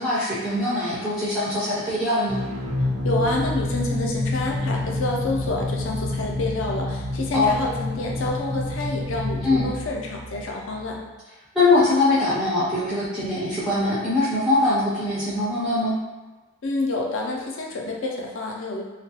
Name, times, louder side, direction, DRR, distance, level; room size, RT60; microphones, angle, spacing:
voice 1, 0.0-2.4 7.3-7.5 9.4-9.7 11.5-16.0, left 2 dB, ahead, -10 dB, 0.4 m, -22 dB
sound 1, 2.3-11.0, left 2 dB, 90° right, 0.8 m, -28 dB
voice 2, 3.0-11.0 16.6-18.8, left 2 dB, 60° left, 0 dB, 0.4 m, -28 dB
2.3 x 2.2 x 2.7 m, 1.2 s
head